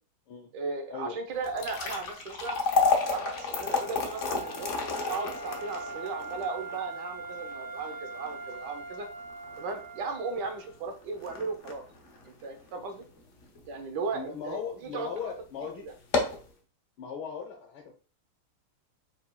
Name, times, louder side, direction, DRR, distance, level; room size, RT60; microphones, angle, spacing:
voice 1, 0.5-2.6 3.1-4.8 5.1-9.1 9.6-11.8 12.2-13.0 13.6-15.1, right 4 dB, 65° right, 5 dB, 1.3 m, -36 dB
sound 1, 1.4-13.7 14.1-14.2 14.9-15.1 15.4-15.5 15.9-16.5, left 4 dB, 65° left, 0.7 m, -32 dB
Wind instrument woodwind instrument, 2.9-10.7, right 3 dB, 35° left, 1.4 m, -42 dB
voice 2, 14.1-15.9 17.0-17.9, left 6 dB, 80° left, 0 dB, 1.8 m, -38 dB
4.7 x 4.4 x 2.3 m, 0.37 s
omnidirectional pair, 2.3 m